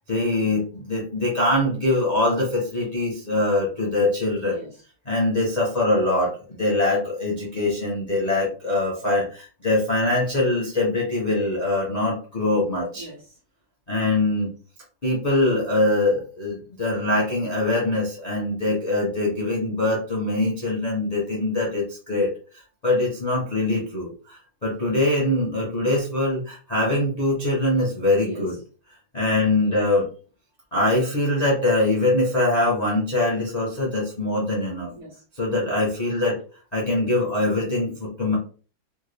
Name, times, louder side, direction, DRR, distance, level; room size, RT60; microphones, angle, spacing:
voice 1, 0.1-4.6 5.1-13.1 13.9-14.5 15.0-22.3 22.8-28.6 29.1-30.1 30.7-34.9 35.3-36.4 36.7-38.4, left 2 dB, 40° left, 0.5 m, -23 dB
voice 2, 4.4-4.8 12.9-13.4 28.2-28.6 34.9-35.2, right 1 dB, 55° right, 1.1 m, -41 dB
3.6 x 2.3 x 3.3 m
omnidirectional pair, 2.2 m